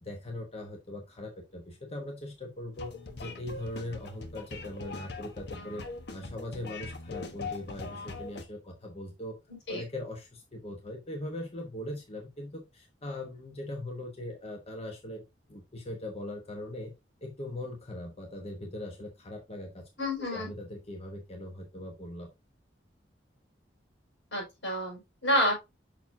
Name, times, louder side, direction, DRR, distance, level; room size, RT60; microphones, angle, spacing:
voice 1, 0.0-2.9 3.2-5.8 6.1-9.3 9.7-15.2 15.5-16.9 17.2-19.9 20.2-22.3, left 1 dB, 35° left, 1 dB, 1.1 m, -40 dB
sound 1, 2.8-8.4, left 3 dB, 65° left, 1.1 m, -41 dB
voice 2, 20.0-20.5 24.3-25.5, equal, 80° left, -1 dB, 4.7 m, -29 dB
6.9 x 6.0 x 2.7 m, 0.23 s
head